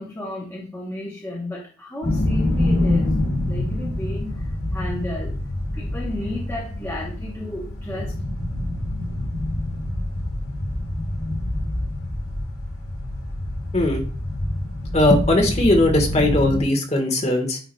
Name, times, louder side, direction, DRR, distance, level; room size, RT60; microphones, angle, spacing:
voice 1, 0.0-3.1 3.5-5.3 5.7-8.2, left 1 dB, 10° left, -4 dB, 0.9 m, -33 dB
sound 1, 2.0-16.6, left 1 dB, 90° left, 1.6 m, -26 dB
voice 2, 13.7-14.0 14.9-17.6, left 1 dB, 30° left, 2 dB, 1.3 m, -19 dB
9.2 x 4.7 x 2.2 m, 0.38 s
head